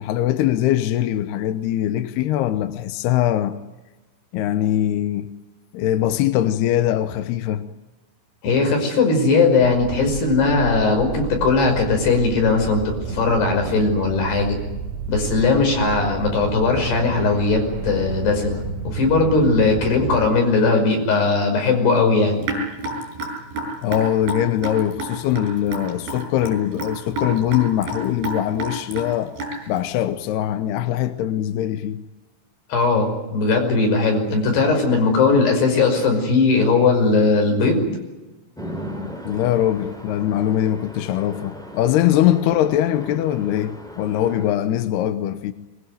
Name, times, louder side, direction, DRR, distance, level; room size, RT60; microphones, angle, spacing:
voice 1, 0.0-3.6 4.3-5.3 5.7-7.7 23.8-29.3 29.7-32.0 39.3-45.5, left 12 dB, 75° left, 2.6 m, -22 dB
voice 2, 8.4-14.6 15.1-22.5 32.7-37.8, left 3 dB, 55° left, 7.5 m, -19 dB
sound 1, 9.6-20.3, right 6 dB, 65° right, 2.8 m, -31 dB
Raindrop / Drip, 22.4-29.8, right 1 dB, 50° right, 8.5 m, -29 dB
Chatter / Traffic noise roadway noise / Train, 38.5-44.5, equal, ahead, 3.6 m, -37 dB
23.5 x 22.5 x 9.4 m
omnidirectional pair, 5.6 m